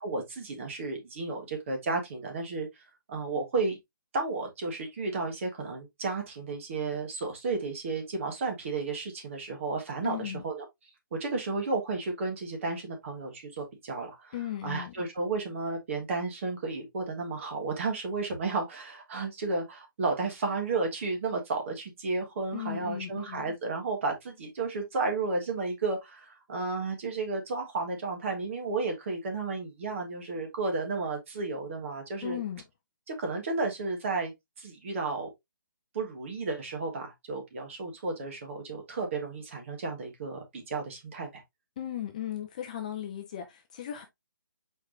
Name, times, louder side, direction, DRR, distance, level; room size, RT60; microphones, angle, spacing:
voice 1, 0.0-2.8 3.1-3.8 4.1-10.5 11.1-14.3 14.6-32.4 33.1-34.3 34.6-35.3 35.9-41.4, right 3 dB, 35° right, 1.4 m, -33 dB
voice 2, 10.0-10.4 14.3-14.9 22.5-23.6 32.2-32.6 41.8-44.0, left 11 dB, 20° left, 0.4 m, -36 dB
4.7 x 4.5 x 2.5 m
hypercardioid pair, 165°, 12 cm